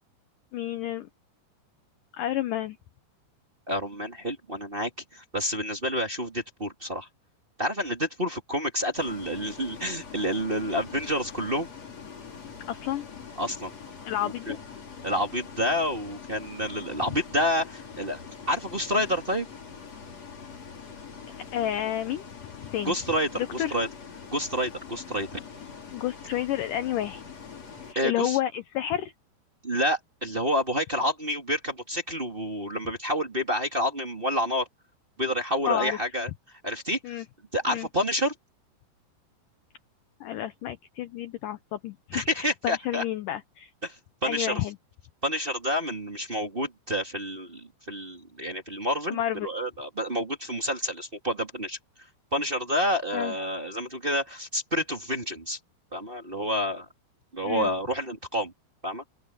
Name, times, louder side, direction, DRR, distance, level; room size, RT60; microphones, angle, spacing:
voice 1, 0.5-1.1 2.2-2.8 12.7-13.1 14.1-14.6 17.1-17.2 21.5-22.2 22.7-23.0 23.3-23.7 25.9-27.2 27.9-29.1 35.7-36.0 37.0-37.3 37.7-37.9 40.2-43.7 44.2-44.8 49.1-49.5 53.1-53.3 57.5-57.7, left 12 dB, 85° left, 1.8 m, -30 dB
voice 2, 3.7-7.1 7.6-11.7 13.4-13.7 14.2-14.6 15.0-18.2 18.5-19.5 22.8-23.9 24.3-25.3 27.9-28.4 29.6-34.7 35.2-36.3 36.6-37.2 37.5-38.3 42.1-43.0 43.8-44.0 44.2-44.6 45.2-51.8 52.3-55.6 55.9-56.8 57.3-58.5 58.8-59.0, equal, 20° right, 1.9 m, -29 dB
Bus, 8.9-27.9, left 6 dB, 40° left, 4.3 m, -44 dB
open air
omnidirectional pair, 4.9 m